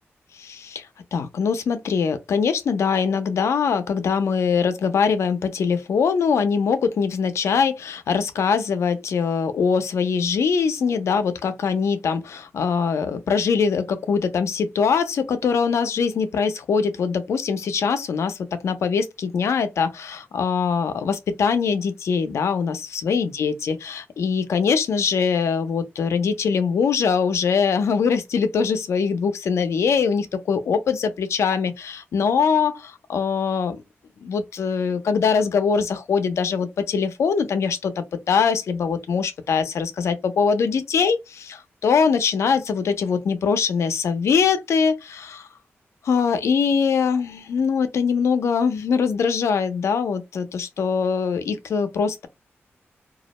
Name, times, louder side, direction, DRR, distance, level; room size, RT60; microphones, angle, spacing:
voice 1, 0.4-33.8 34.2-37.9 38.3-45.5 46.0-52.3, left 6 dB, 80° left, 0.5 m, -22 dB
2.3 x 2.1 x 2.9 m
cardioid pair, 90°, 5 cm